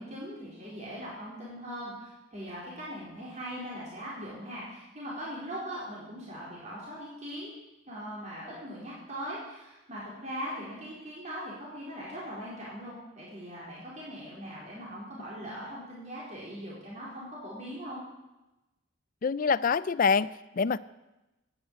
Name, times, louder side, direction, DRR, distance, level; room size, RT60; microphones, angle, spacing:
voice 1, 0.0-7.6 7.9-18.0, equal, 35° right, -6 dB, 4.2 m, -40 dB
voice 2, 19.2-20.8, left 5 dB, 45° left, 18 dB, 0.4 m, -26 dB
13.0 x 9.7 x 8.6 m, 1.0 s
head